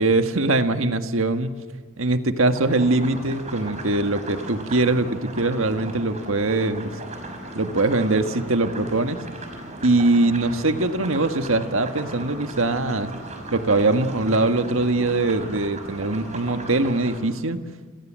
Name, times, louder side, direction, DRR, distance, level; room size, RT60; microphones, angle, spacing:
voice 1, 0.0-1.6 2.0-6.9 7.5-9.2 9.8-13.1 13.5-17.6, right 2 dB, 70° right, 8 dB, 1.7 m, -22 dB
sound 1, 2.5-17.2, right 2 dB, 35° right, 5.5 m, -37 dB
28.0 x 27.5 x 7.6 m, 1.5 s
head